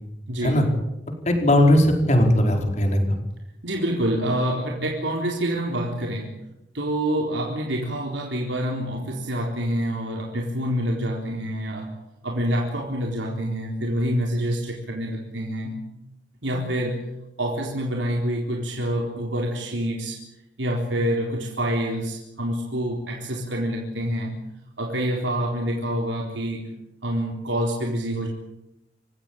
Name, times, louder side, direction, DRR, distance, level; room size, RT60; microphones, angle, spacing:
voice 1, 0.3-0.7 3.6-6.4 6.7-11.9 12.2-15.8 16.4-17.0 17.4-20.2 20.6-24.4 24.8-26.7 27.0-28.3, equal, 90° right, 0 dB, 4.0 m, -27 dB
voice 2, 1.2-3.2, left 1 dB, 40° left, 4 dB, 4.8 m, -18 dB
28.0 x 16.0 x 9.0 m, 0.89 s
head